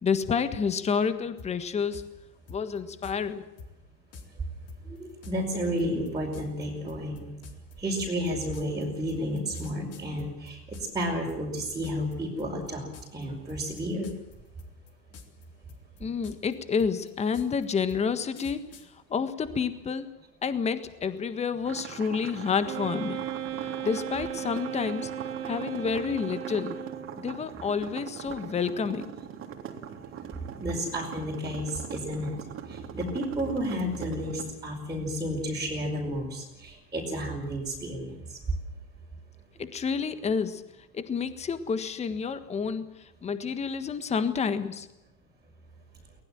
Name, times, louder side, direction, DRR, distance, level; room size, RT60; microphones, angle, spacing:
voice 1, 0.0-2.0 2.5-3.4 16.0-18.6 19.1-20.1 20.4-23.2 23.6-25.1 25.4-26.8 27.2-29.0 39.6-40.6 40.9-42.8 43.2-44.9, left 6 dB, 15° left, 11 dB, 1.5 m, -29 dB
sound 1, 1.4-1.5 1.9-2.1 2.5-3.2 3.6-3.7 4.1-4.3 4.7-11.0 11.3-12.1 12.4-12.7 12.9-13.2 13.5-14.3 14.6-15.4 15.7-18.9, left 4 dB, 30° left, 4.0 m, -46 dB
voice 2, 4.8-7.3 7.8-14.1 30.6-32.4 32.6-38.4, equal, 10° right, -4 dB, 5.4 m, -32 dB
sound 2, 21.6-34.5, right 8 dB, 25° right, 3.3 m, -41 dB
Wind instrument woodwind instrument, 22.6-27.3, right 10 dB, 70° right, 2.7 m, -36 dB
23.5 x 20.0 x 7.7 m, 0.92 s
hypercardioid pair, 125°, 48 cm